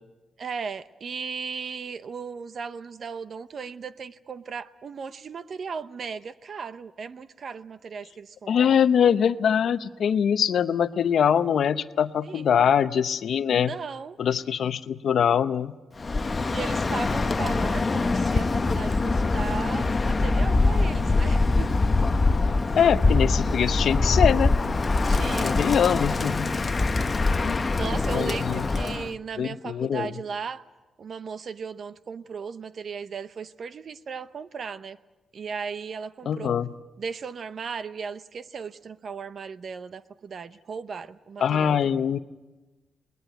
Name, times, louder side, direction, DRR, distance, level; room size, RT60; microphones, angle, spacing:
voice 1, 0.4-8.6 12.2-12.5 13.5-14.2 16.5-21.7 22.6-22.8 25.1-25.7 26.0-26.2 27.8-30.6 31.0-35.0 35.3-36.5 37.0-41.9, right 5 dB, 50° right, 14 dB, 0.7 m, -36 dB
voice 2, 8.5-13.7 14.2-15.8 22.7-24.5 25.4-26.5 27.4-27.6 28.1-28.7 29.4-30.1 36.3-36.7 41.4-42.2, left 8 dB, 65° left, 13 dB, 0.7 m, -23 dB
Bird, 16.0-29.1, left 3 dB, 25° left, 0.8 m, -23 dB
20.5 x 20.0 x 9.3 m, 1.2 s
cardioid pair, 135°, 0 cm